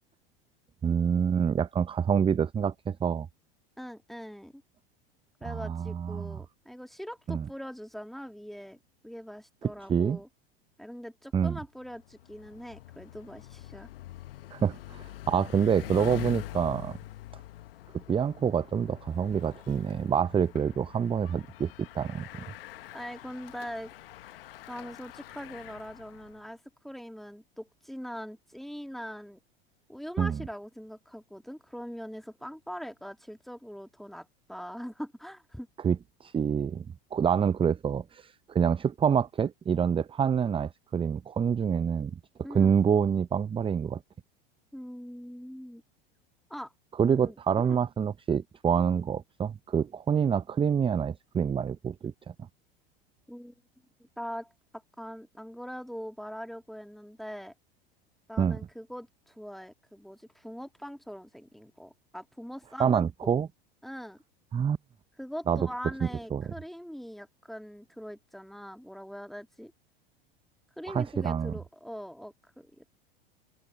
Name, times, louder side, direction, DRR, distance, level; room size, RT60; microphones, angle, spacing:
voice 1, 0.8-3.3 5.5-6.4 7.3-7.5 9.9-10.2 11.3-11.6 14.5-17.0 18.1-22.4 30.2-30.4 35.8-36.8 37.1-42.1 42.5-44.0 47.0-52.1 58.4-58.6 62.8-63.5 64.5-64.8 65.5-65.7 66.0-66.5 70.9-71.5, right 7 dB, 15° right, 0.7 m, -27 dB
voice 2, 3.8-4.6 5.4-8.8 9.0-10.3 10.8-13.9 22.9-23.9 24.7-29.4 29.9-35.7 42.4-42.8 44.7-45.8 46.5-46.7 47.1-47.8 53.3-53.6 54.0-54.5 55.0-57.5 58.3-63.4 63.8-64.2 65.2-69.7 70.8-72.8, equal, ahead, 1.8 m, -42 dB
Bicycle, 11.8-26.5, left 14 dB, 70° left, 1.4 m, -45 dB
open air
hypercardioid pair, 85°, 30 cm